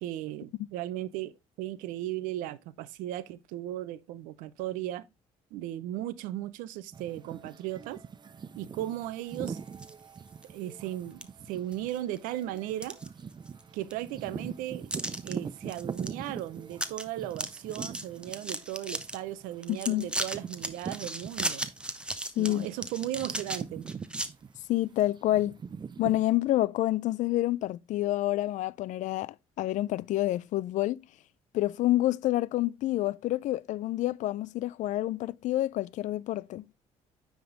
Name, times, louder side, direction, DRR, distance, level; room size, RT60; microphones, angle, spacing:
voice 1, 0.0-5.1 5.5-8.0 8.5-9.6 10.5-13.0 13.7-14.9 15.2-21.6 22.4-23.8, right 13 dB, 85° right, 0.7 m, -36 dB
sound 1, 6.9-22.1 22.4-26.2, right 6 dB, 35° right, 0.6 m, -43 dB
sound 2, 9.3-9.9 10.4-10.5 11.2-11.3 11.7-12.2 12.6-13.6 13.9-14.0 14.9-15.3 15.7-16.1 16.4-16.5 16.7-17.0 17.3-19.2 19.6-24.3, right 1 dB, 5° right, 0.9 m, -36 dB
voice 2, 19.7-20.1 22.4-22.7 24.7-25.6 26.0-31.0 31.5-36.7, left 15 dB, 65° left, 0.4 m, -28 dB
9.3 x 3.7 x 3.9 m
supercardioid pair, 70°, 14 cm